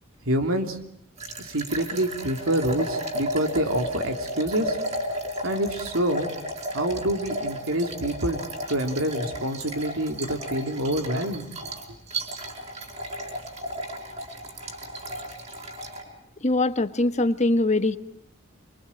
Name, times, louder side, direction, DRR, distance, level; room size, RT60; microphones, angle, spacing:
voice 1, 0.2-0.8 1.4-4.8 5.4-6.3 6.7-8.4 8.7-11.4, right 1 dB, 90° right, 5 dB, 3.3 m, -26 dB
sound 1, 1.2-16.0, right 1 dB, 30° right, 5.0 m, -33 dB
voice 2, 16.4-18.0, left 2 dB, 35° left, 10 dB, 1.3 m, -22 dB
29.5 x 23.5 x 8.8 m, 0.70 s
head